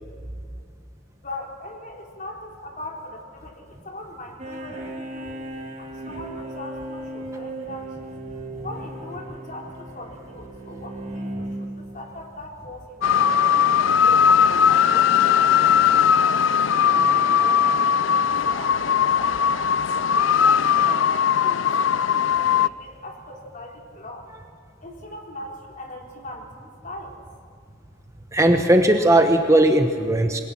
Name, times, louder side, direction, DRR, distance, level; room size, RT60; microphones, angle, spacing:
voice 1, 1.2-5.4 5.8-8.1 8.6-13.5 13.9-17.8 18.5-19.7 20.3-24.2 24.8-27.2, left 1 dB, 45° left, 0 dB, 4.1 m, -39 dB
sound 1, 4.4-12.0, right 1 dB, 40° right, 3.8 m, -36 dB
sound 2, 13.0-22.7, left 7 dB, 75° left, 0.5 m, -19 dB
voice 2, 28.3-30.4, right 1 dB, 15° right, 5 dB, 1.1 m, -17 dB
27.5 x 21.5 x 6.1 m, 2.3 s
head